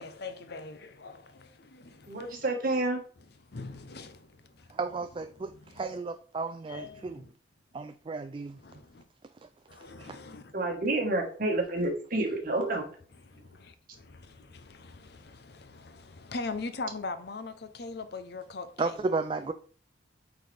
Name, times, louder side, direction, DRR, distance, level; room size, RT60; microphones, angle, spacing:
voice 1, 0.0-2.4 3.5-4.8 5.5-5.8 6.7-7.3 8.6-9.0 9.7-10.5 13.2-19.1, left 3 dB, 60° left, 0.7 m, -42 dB
voice 2, 2.1-3.0 10.5-12.9, right 2 dB, 50° right, 1.5 m, -29 dB
voice 3, 4.7-7.2 7.7-8.6 10.0-10.2 18.8-19.5, right 3 dB, 30° right, 0.3 m, -33 dB
8.5 x 4.1 x 3.4 m
head